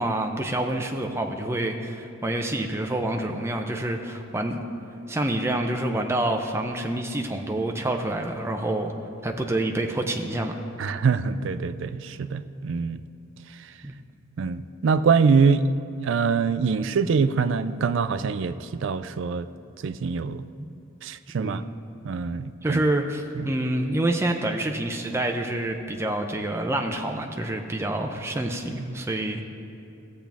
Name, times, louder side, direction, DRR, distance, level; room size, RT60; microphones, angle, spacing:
voice 1, 0.0-4.6 5.1-8.9 9.2-10.5 13.8-14.0 21.4-21.7 22.6-29.4, right 1 dB, 10° right, 3 dB, 0.5 m, -27 dB
voice 2, 10.8-13.0 14.4-15.7 16.0-19.5 19.8-20.5 21.0-21.6 22.0-22.8 23.4-23.5, right 5 dB, 60° right, 12 dB, 0.3 m, -24 dB
16.0 x 7.4 x 3.5 m, 2.7 s
head